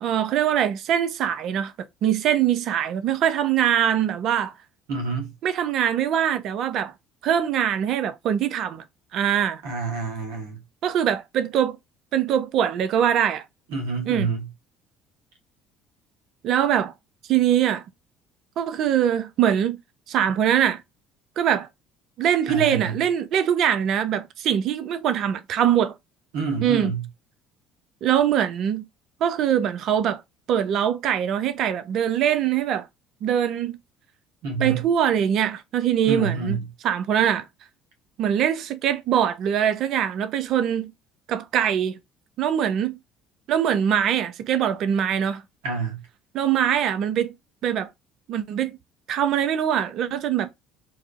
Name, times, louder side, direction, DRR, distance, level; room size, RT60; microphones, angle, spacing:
voice 1, 0.0-1.7 2.0-4.5 5.4-6.9 7.2-8.8 9.1-9.6 10.8-11.8 12.1-13.4 14.1-14.3 16.4-16.9 17.3-17.8 18.6-19.8 20.1-20.8 21.4-21.7 22.2-25.9 26.6-26.9 28.0-28.9 29.2-30.2 30.5-32.9 33.2-33.8 34.6-36.6 36.8-37.4 38.2-40.9 41.3-42.0 42.4-42.9 43.5-45.4 46.3-47.3 47.6-47.9 48.3-48.8 49.1-50.5, right 9 dB, 60° right, 0.5 m, -22 dB
voice 2, 4.9-5.3 9.6-10.6 13.7-14.5 22.5-23.0 26.3-27.1 34.4-34.8 36.1-36.7 45.6-46.0, right 4 dB, 80° right, 1.1 m, -28 dB
4.0 x 2.4 x 2.4 m
hypercardioid pair, 70°, 0 cm